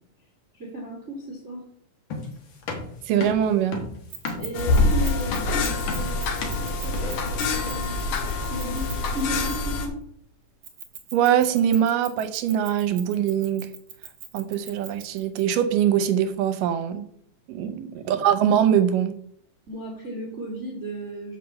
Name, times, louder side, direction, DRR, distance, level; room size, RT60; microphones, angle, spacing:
voice 1, 0.5-1.6 4.4-8.2 8.5-10.0 17.5-17.7 19.7-21.4, equal, 25° right, 1.8 m, -35 dB
sound 1, 2.1-7.9, left 3 dB, 50° left, 1.7 m, -34 dB
voice 2, 3.1-3.8 11.1-13.7 14.3-17.0 17.5-19.1, right 9 dB, 80° right, 2.4 m, -22 dB
Keys jangling, 4.1-9.8 10.6-15.4, right 7 dB, 50° right, 2.3 m, -41 dB
sound 2, 4.5-9.9, left 3 dB, 70° left, 2.4 m, -25 dB
6.7 x 5.8 x 6.8 m
omnidirectional pair, 3.8 m